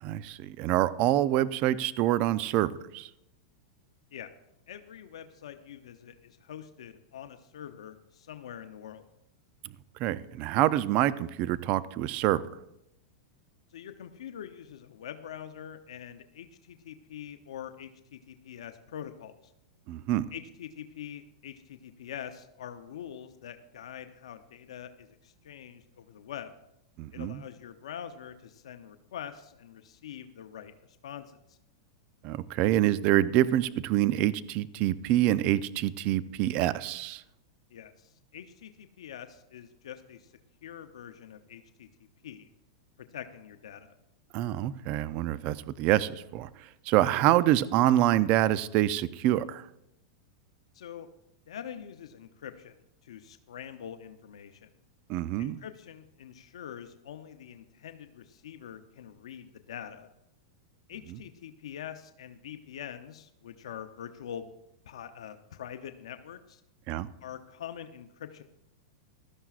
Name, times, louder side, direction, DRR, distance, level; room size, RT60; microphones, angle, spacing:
voice 1, 0.0-3.1 10.0-12.4 19.9-20.3 27.0-27.4 32.2-37.2 44.3-46.5 46.9-49.7 55.1-55.6 66.9-67.1, right 13 dB, 45° right, 16 dB, 0.5 m, -26 dB
voice 2, 4.7-9.0 13.7-19.5 20.3-26.5 27.1-31.6 37.7-40.3 40.6-41.9 42.2-42.5 43.0-43.9 50.7-51.1 51.5-52.7 53.0-54.7 55.4-60.1 60.9-64.5 64.9-66.6 67.2-68.4, left 9 dB, 85° left, 9 dB, 0.7 m, -44 dB
16.5 x 12.5 x 2.5 m, 0.85 s
hypercardioid pair, 130°, 3 cm